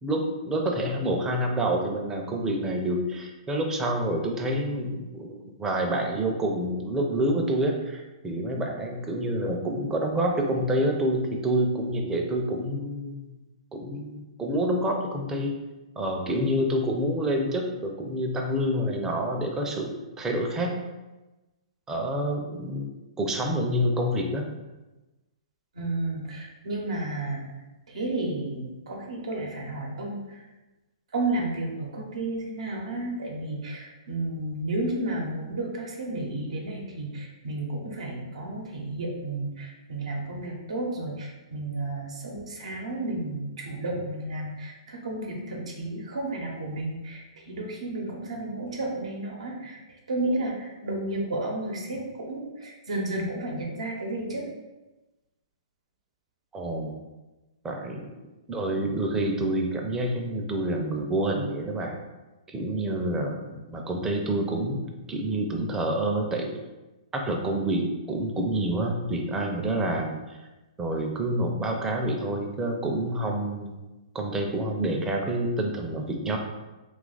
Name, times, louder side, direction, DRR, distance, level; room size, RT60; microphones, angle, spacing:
voice 1, 0.0-13.3 13.7-15.5 16.0-20.8 21.9-22.9 23.2-24.5 56.5-57.0 57.6-58.0 58.5-62.0 62.5-66.5 67.1-70.2 70.8-73.7 74.1-76.4, right 1 dB, 15° right, 1 dB, 0.5 m, -28 dB
voice 2, 25.7-27.4 27.9-30.5 31.1-49.8 50.1-54.5, right 2 dB, 80° right, -1 dB, 0.7 m, -32 dB
2.8 x 2.4 x 3.9 m, 1.1 s
hypercardioid pair, 130°, 3 cm